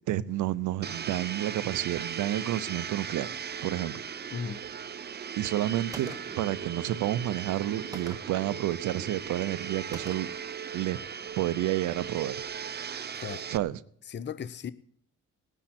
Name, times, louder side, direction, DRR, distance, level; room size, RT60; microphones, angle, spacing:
voice 1, 0.1-3.3 3.6-4.0 5.4-10.3 10.7-11.0 11.4-12.4 13.5-13.8, right 13 dB, 80° right, 0.7 m, -30 dB
Domestic sounds home sounds, 0.8-13.6, right 7 dB, 35° right, 0.6 m, -38 dB
voice 2, 4.3-4.6 13.1-13.5 14.1-14.7, left 7 dB, 35° left, 0.7 m, -36 dB
Gunshot gunfire, 5.9-6.5 7.9-8.5 9.9-10.5, right 2 dB, 10° right, 1.3 m, -44 dB
19.0 x 10.0 x 4.3 m
cardioid pair, 90°, 30 cm